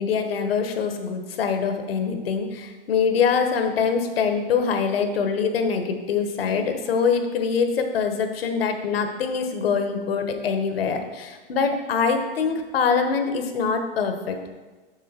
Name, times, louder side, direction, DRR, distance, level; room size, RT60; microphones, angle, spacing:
voice 1, 0.0-14.5, left 6 dB, 75° left, 6 dB, 1.2 m, -24 dB
7.3 x 6.4 x 4.3 m, 1.3 s
hypercardioid pair, 130°, 30 cm